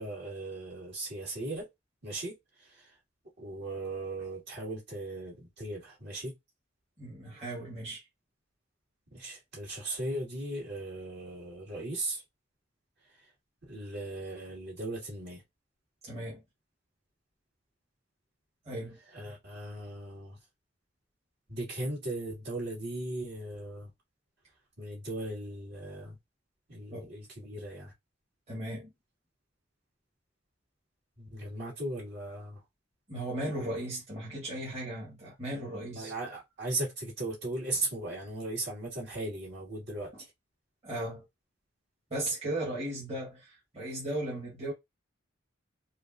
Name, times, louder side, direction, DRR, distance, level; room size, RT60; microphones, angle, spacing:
voice 1, 0.0-1.7 2.0-2.9 3.4-6.3 9.1-12.2 13.6-15.4 19.1-20.4 21.5-23.9 24.8-26.2 26.7-27.9 31.2-32.6 35.9-40.1, right 2 dB, 55° right, 2.6 m, -37 dB
voice 2, 7.0-8.0 16.0-16.4 18.6-19.0 26.9-27.1 28.5-28.9 33.1-36.1 40.1-40.2 40.8-41.3 42.1-44.7, right 1 dB, 30° right, 1.7 m, -36 dB
5.0 x 2.4 x 2.7 m
head